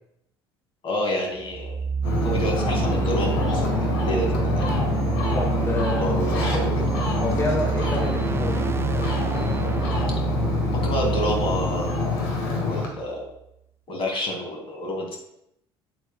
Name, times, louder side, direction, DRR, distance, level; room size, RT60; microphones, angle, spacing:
voice 1, 0.8-1.7 2.2-4.7 5.9-6.8 10.8-12.0 12.6-13.3 13.9-15.2, left 1 dB, 40° left, 0 dB, 2.5 m, -28 dB
sound 1, 1.4-13.2, right 7 dB, 20° right, 0.4 m, -28 dB
Ocean, 2.0-12.9, left 4 dB, 65° left, 1.7 m, -26 dB
voice 2, 5.3-6.1 7.2-8.7, left 2 dB, 20° left, -2 dB, 1.8 m, -28 dB
7.9 x 7.9 x 2.3 m, 0.79 s
figure-of-eight pair, 60°, 13 cm